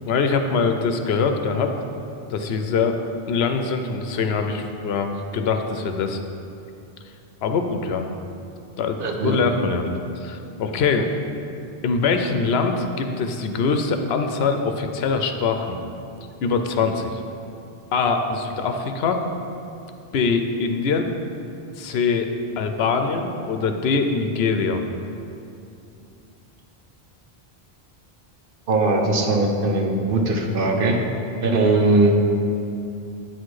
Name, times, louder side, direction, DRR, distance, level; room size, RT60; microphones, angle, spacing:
voice 1, 0.1-1.7 2.3-3.0 3.3-6.2 7.4-8.1 8.8-9.9 10.2-11.1 11.8-15.8 16.4-17.2 17.9-19.2 20.1-21.1 21.8-22.3 22.6-24.8, left 4 dB, 75° left, 6 dB, 0.8 m, -23 dB
voice 2, 9.0-9.4 28.7-31.0 31.4-32.1, right 2 dB, 60° right, 1 dB, 0.9 m, -20 dB
9.0 x 4.3 x 4.7 m, 2.6 s
omnidirectional pair, 1.1 m